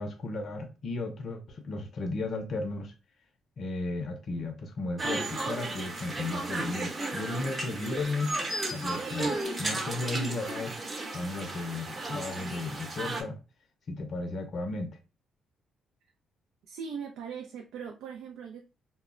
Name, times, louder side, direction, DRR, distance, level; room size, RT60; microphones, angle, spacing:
voice 1, 0.0-2.9 3.6-8.4 8.7-10.8 11.1-13.4 13.9-15.0, left 3 dB, 55° left, 0.5 m, -35 dB
sound 1, 5.0-13.2, right 2 dB, 35° right, 0.8 m, -34 dB
voice 2, 16.7-18.6, right 6 dB, 90° right, 0.3 m, -40 dB
2.1 x 2.0 x 3.6 m
cardioid pair, 90°, 0 cm